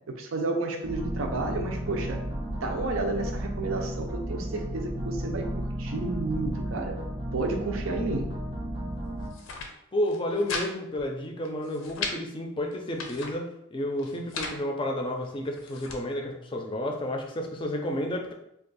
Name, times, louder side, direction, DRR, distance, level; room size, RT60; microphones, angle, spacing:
voice 1, 0.2-2.2 2.5-5.5 5.8-7.0 7.3-8.3, right 2 dB, 90° right, 3 dB, 0.5 m, -31 dB
sound 1, 0.8-9.3, right 1 dB, 25° right, 0.5 m, -33 dB
sound 2, 9.2-9.7 10.1-10.7 11.0-11.1 11.4-12.2 12.7-13.3 14.0-14.6 15.2-16.0, left 4 dB, 90° left, 0.6 m, -36 dB
voice 2, 9.9-18.3, left 1 dB, 25° left, 2 dB, 0.4 m, -31 dB
2.6 x 2.4 x 3.9 m, 0.78 s
head